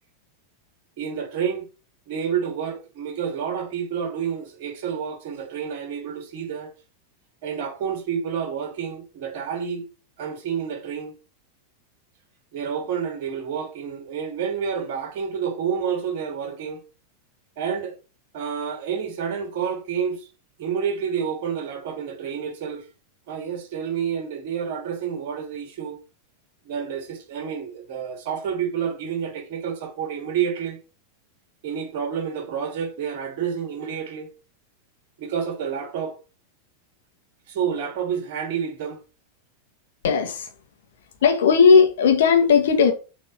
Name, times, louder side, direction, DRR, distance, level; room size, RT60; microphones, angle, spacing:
voice 1, 1.0-1.7 2.1-6.7 7.4-9.9 10.2-11.1 12.5-16.8 17.6-17.9 18.3-20.3 20.6-22.8 23.3-26.0 26.6-30.8 31.6-34.3 35.2-36.2 37.5-39.0, right 7 dB, 50° right, 2.5 m, -29 dB
voice 2, 40.0-40.5 41.2-42.9, left 6 dB, 60° left, 1.7 m, -16 dB
7.2 x 4.1 x 5.6 m
figure-of-eight pair, 90°, 0 cm